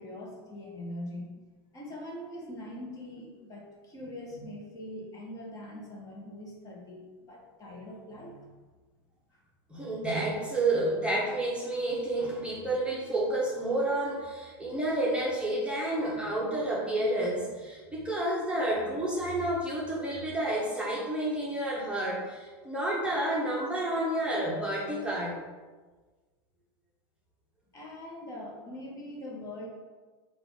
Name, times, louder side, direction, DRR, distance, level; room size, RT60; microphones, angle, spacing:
voice 1, 0.0-1.4 1.7-8.6 9.3-9.4 27.7-29.7, left 1 dB, 25° left, -3 dB, 1.1 m, -42 dB
voice 2, 9.7-25.3, right 1 dB, 10° right, -5 dB, 1.0 m, -30 dB
5.8 x 2.5 x 3.6 m, 1.3 s
supercardioid pair, 125°, 13 cm